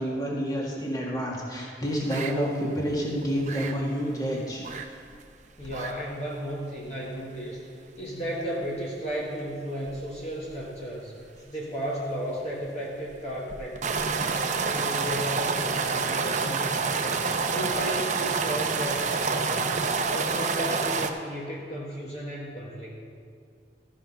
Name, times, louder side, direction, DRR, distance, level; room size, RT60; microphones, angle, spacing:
voice 1, 0.0-4.7, equal, 20° left, -3 dB, 1.8 m, -29 dB
sound 1, 2.1-2.3 2.7-2.9 3.2-3.7 4.6-4.9 5.1-5.2 5.6-5.9 6.2-6.3 7.0-7.1 9.9-10.1 10.5-10.6 13.5-21.1, right 4 dB, 45° right, 0.6 m, -28 dB
voice 2, 5.6-7.6 8.0-11.1 11.5-14.3 14.7-19.8 20.1-22.9, equal, 40° left, -5 dB, 1.5 m, -34 dB
13.5 x 5.8 x 5.7 m, 2.3 s
head